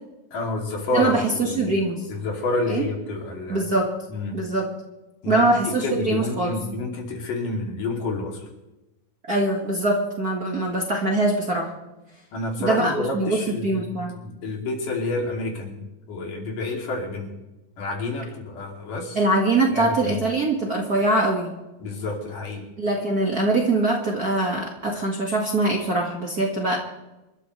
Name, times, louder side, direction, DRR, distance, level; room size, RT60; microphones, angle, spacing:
voice 1, 0.3-1.8 2.1-3.7 4.1-4.4 5.2-8.5 12.3-17.4 17.8-19.2 19.7-20.2 21.8-22.6, left 2 dB, 70° left, 0 dB, 4.3 m, -29 dB
voice 2, 0.9-2.0 2.7-2.8 3.5-3.9 4.3-4.7 5.3-6.5 9.3-11.7 12.6-14.2 19.2-21.5 22.8-26.8, right 2 dB, 35° right, -2 dB, 1.7 m, -23 dB
27.0 x 13.0 x 3.2 m, 1.0 s
omnidirectional pair, 3.9 m